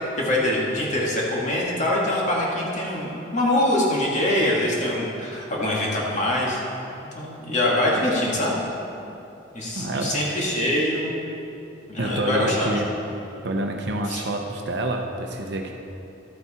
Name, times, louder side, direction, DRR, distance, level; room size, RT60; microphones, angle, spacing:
voice 1, 0.2-6.6 7.1-8.6 9.5-11.1 11.9-12.7 14.1-14.2, left 1 dB, 40° left, -4 dB, 2.0 m, -24 dB
voice 2, 9.7-10.2 12.0-12.9 13.4-15.7, right 1 dB, 65° right, 2 dB, 0.8 m, -27 dB
12.5 x 8.2 x 4.3 m, 2.8 s
head